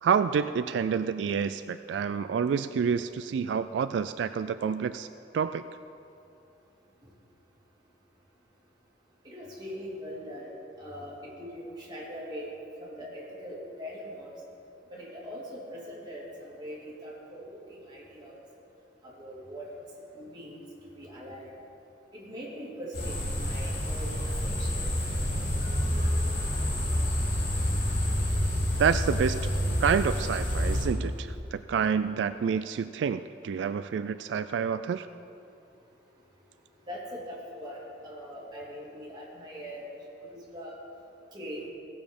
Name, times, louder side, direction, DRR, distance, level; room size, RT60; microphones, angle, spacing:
voice 1, 0.0-5.6 28.8-29.4 29.8-35.1, right 6 dB, 80° right, 12 dB, 0.3 m, -28 dB
voice 2, 9.2-10.5 10.8-14.3 14.9-18.4 19.0-19.7 20.1-21.5 22.1-24.9 29.3-31.3 36.9-39.9 40.3-40.8 41.3-41.6, equal, 25° right, -6 dB, 2.8 m, -42 dB
sound 1, 22.9-30.8, equal, 60° left, 3.1 m, -28 dB
16.5 x 7.0 x 5.2 m, 2.7 s
head